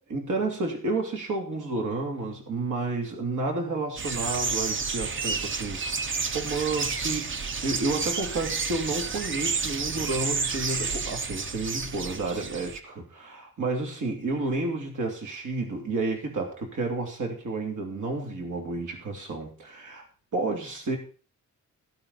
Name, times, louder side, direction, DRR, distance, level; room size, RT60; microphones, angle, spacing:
voice 1, 0.1-7.3 7.6-20.1 20.3-21.0, right 3 dB, 75° right, 2 dB, 3.0 m, -31 dB
sound 1, 4.0-12.8, right 5 dB, 40° right, 0.8 m, -30 dB
14.0 x 9.0 x 4.2 m, 0.39 s
wide cardioid pair, 160°, 30 cm